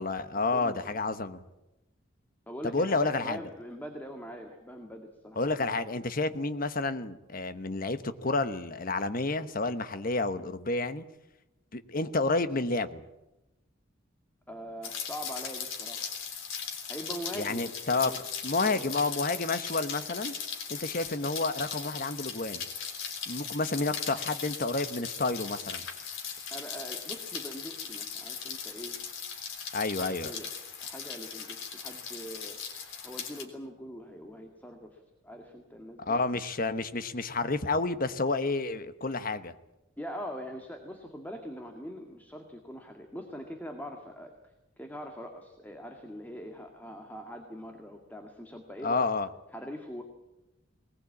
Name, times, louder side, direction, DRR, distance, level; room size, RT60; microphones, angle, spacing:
voice 1, 0.0-1.4 2.6-3.4 5.4-11.0 11.7-13.0 17.3-20.3 20.7-22.6 23.3-25.9 29.7-30.3 36.0-39.5 48.8-49.3, left 3 dB, 45° left, 11 dB, 1.1 m, -30 dB
voice 2, 0.5-1.0 2.5-5.4 14.5-16.1 16.9-18.2 18.6-19.0 26.5-29.0 30.0-30.5 30.8-32.6 33.0-36.2 40.0-44.3 44.8-49.1 49.5-50.0, equal, 10° left, 3 dB, 2.0 m, -42 dB
Rain, 14.8-33.4, left 6 dB, 85° left, 3.7 m, -38 dB
21.0 x 20.0 x 8.6 m, 0.95 s
head